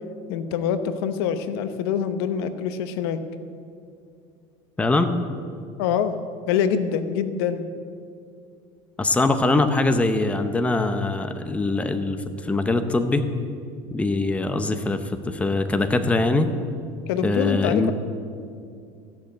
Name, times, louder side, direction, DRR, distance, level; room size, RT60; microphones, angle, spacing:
voice 1, 0.3-3.2 5.8-6.1 6.5-7.7 17.1-17.9, left 8 dB, 90° left, 10 dB, 0.9 m, -25 dB
voice 2, 4.8-5.1 9.0-13.3 13.9-16.5 17.2-17.9, left 2 dB, 10° left, 8 dB, 0.7 m, -22 dB
14.5 x 6.5 x 8.5 m, 2.3 s
cardioid pair, 135°, 13 cm